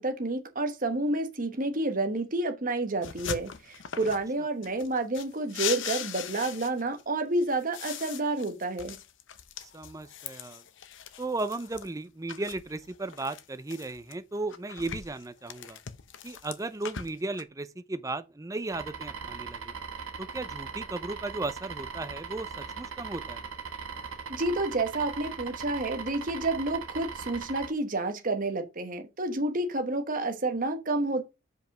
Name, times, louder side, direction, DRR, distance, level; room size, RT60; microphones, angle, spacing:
voice 1, 0.0-9.0 24.3-31.2, right 2 dB, 40° right, 1.1 m, -29 dB
sound 1, 3.0-4.3 4.6-7.0 7.4-11.9 12.3-14.1 14.5-17.4, left 9 dB, 60° left, 0.7 m, -40 dB
voice 2, 9.6-10.6 11.2-15.8 16.2-19.7 20.2-23.4, right 2 dB, 15° right, 0.5 m, -35 dB
sound 2, 18.7-27.7, right 5 dB, 75° right, 1.2 m, -39 dB
5.2 x 5.2 x 5.9 m
head